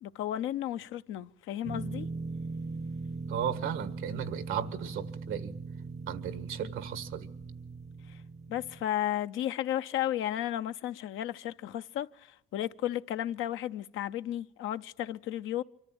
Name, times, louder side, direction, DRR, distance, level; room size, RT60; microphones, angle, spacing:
voice 1, 0.0-2.1 8.1-8.2 8.5-15.6, left 12 dB, 90° left, 0.7 m, -34 dB
sound 1, 1.6-8.8, right 4 dB, 35° right, 0.7 m, -40 dB
voice 2, 3.3-5.5 6.1-7.3, right 8 dB, 90° right, 1.6 m, -35 dB
25.0 x 13.5 x 8.7 m
cardioid pair, 90°, 20 cm